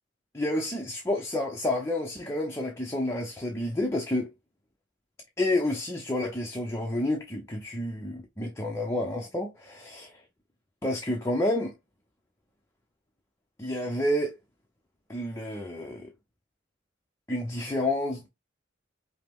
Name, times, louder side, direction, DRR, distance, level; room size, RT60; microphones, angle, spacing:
voice 1, 0.3-4.3 5.4-10.1 10.8-11.7 13.6-14.3 15.1-16.1 17.3-18.3, left 1 dB, 15° left, 0.6 m, -29 dB
5.5 x 2.1 x 3.4 m
head